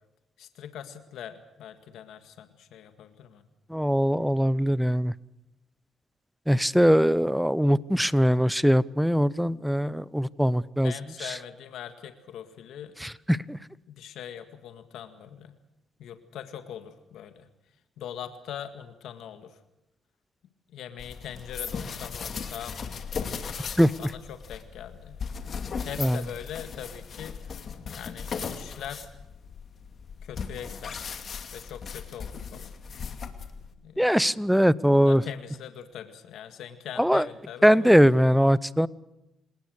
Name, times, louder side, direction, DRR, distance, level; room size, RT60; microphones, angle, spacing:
voice 1, 0.4-3.4 8.4-8.7 10.8-12.9 13.9-15.5 16.0-17.5 18.0-19.6 20.7-23.0 24.0-25.1 25.9-27.3 27.9-29.1 30.2-31.1 31.5-32.7 33.8-34.3 34.9-38.0, left 9 dB, 80° left, 9 dB, 1.9 m, -41 dB
voice 2, 3.7-5.1 6.5-10.9 13.0-13.6 23.8-23.9 26.0-26.2 34.0-35.2 37.0-37.3 37.6-38.9, equal, ahead, 20 dB, 0.7 m, -21 dB
sound 1, 21.0-33.7, left 6 dB, 50° left, 2.4 m, -37 dB
28.5 x 18.5 x 6.5 m, 0.89 s
cardioid pair, 90°, 0 cm